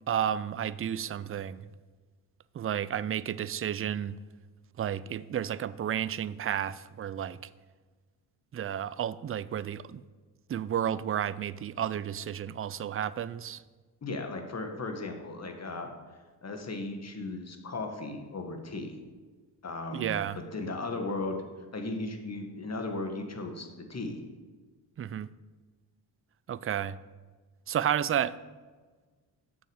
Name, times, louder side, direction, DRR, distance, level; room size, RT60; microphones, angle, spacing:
voice 1, 0.1-1.7 2.5-4.2 4.8-7.5 8.5-10.0 10.5-13.6 19.9-20.4 25.0-25.3 26.5-27.0 27.7-28.4, right 9 dB, 30° right, 0.4 m, -32 dB
voice 2, 14.0-15.9 16.4-19.0 19.6-21.4 21.7-24.2, left 2 dB, 35° left, 1.8 m, -36 dB
7.3 x 5.9 x 7.4 m
supercardioid pair, 60°, 45 cm